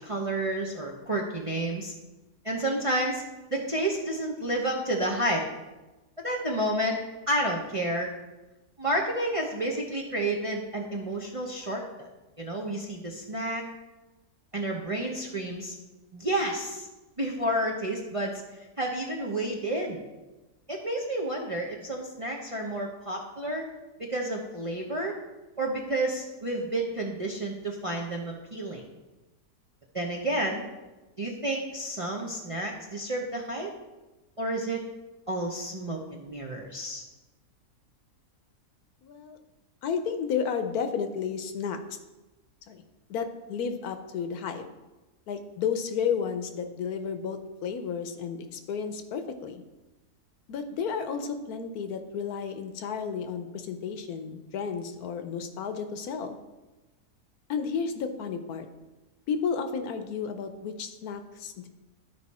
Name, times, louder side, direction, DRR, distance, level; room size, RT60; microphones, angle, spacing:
voice 1, 0.0-1.9 2.4-3.2 3.5-5.5 6.2-7.0 7.3-8.1 8.8-12.1 12.4-13.6 14.5-15.7 16.1-16.9 17.2-18.4 18.8-20.0 20.7-23.7 24.0-25.2 25.6-28.9 29.9-30.6 31.2-33.7 34.4-34.8 35.3-37.0, right 1 dB, 30° right, -1 dB, 0.7 m, -30 dB
voice 2, 39.0-39.4 39.8-41.8 42.7-42.8 43.1-44.6 45.3-49.6 50.5-56.4 57.5-58.7 59.3-61.7, left 6 dB, 75° left, 8 dB, 1.2 m, -32 dB
12.0 x 5.0 x 4.2 m, 1.1 s
omnidirectional pair, 1.7 m